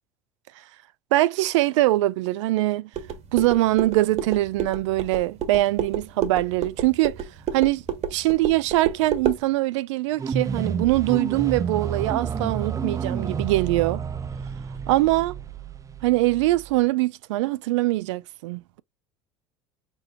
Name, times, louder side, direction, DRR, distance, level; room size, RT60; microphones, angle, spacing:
voice 1, 1.1-2.9 3.3-7.2 7.5-7.8 8.1-14.0 14.9-15.3 16.0-18.8, right 17 dB, 90° right, 0.4 m, -22 dB
sound 1, 2.9-9.4, right 8 dB, 45° right, 1.1 m, -30 dB
sound 2, 10.1-16.8, right 6 dB, 20° right, 0.4 m, -30 dB
5.2 x 2.1 x 3.6 m
supercardioid pair, 100°, 15 cm